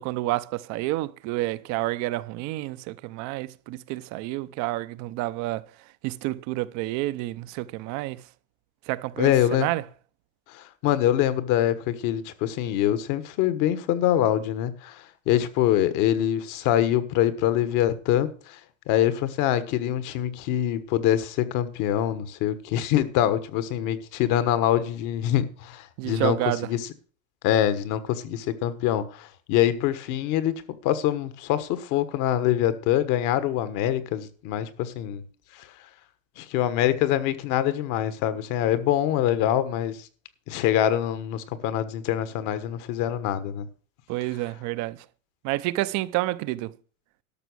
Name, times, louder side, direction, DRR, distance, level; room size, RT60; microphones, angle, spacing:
voice 1, 0.0-5.7 6.0-8.2 8.9-9.8 26.0-26.7 44.1-45.0 45.4-46.7, right 18 dB, 45° right, 0.7 m, -29 dB
voice 2, 9.2-9.7 10.5-18.6 18.9-26.4 26.6-26.8 27.4-35.2 36.4-40.1 40.5-43.7, left 11 dB, 50° left, 1.4 m, -24 dB
12.5 x 6.1 x 6.2 m
supercardioid pair, 120°, 40 cm